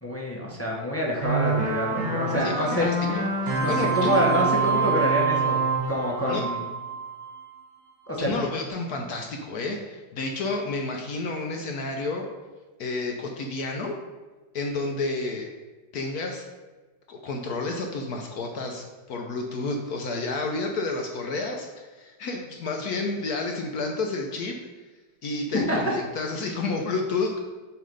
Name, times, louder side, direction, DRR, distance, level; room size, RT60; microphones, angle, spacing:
voice 1, 0.0-2.9 3.5-5.6 5.9-6.6 8.1-8.5 25.7-25.8, equal, 15° left, -3 dB, 0.5 m, -26 dB
sound 1, 1.2-7.3, right 4 dB, 70° right, 2.1 m, -26 dB
voice 2, 2.4-4.3 6.3-6.4 8.2-12.3 12.8-14.0 14.5-15.5 15.9-16.5 17.1-24.6 25.2-27.4, left 3 dB, 65° left, 2 dB, 1.0 m, -30 dB
7.4 x 3.3 x 5.3 m, 1.3 s
omnidirectional pair, 2.1 m